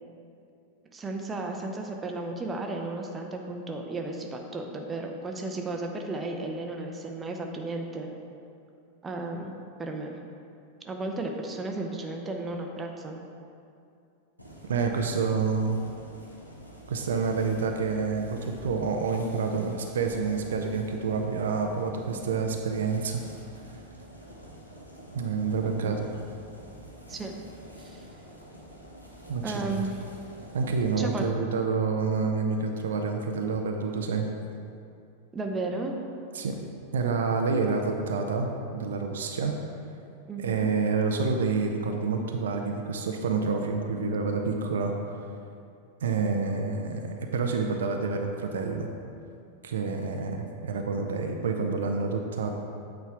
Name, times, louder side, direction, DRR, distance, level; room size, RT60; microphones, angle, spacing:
voice 1, 0.9-8.1 9.0-10.2 10.8-13.2 25.8-26.0 27.1-27.4 27.8-28.1 29.4-30.0 31.0-31.3 35.3-36.0 40.3-40.7, right 2 dB, 15° right, 2 dB, 0.7 m, -34 dB
sound 1, 14.4-31.1, equal, 85° left, 1.0 m, -47 dB
voice 2, 14.7-15.8 16.9-23.2 25.1-26.0 29.3-29.7 30.5-34.3 36.3-36.6 36.9-39.5 40.4-44.9 46.0-48.9 49.6-52.5, right 4 dB, 65° right, 3 dB, 0.6 m, -28 dB
8.2 x 4.4 x 4.7 m, 2.5 s
figure-of-eight pair, 90°, 0 cm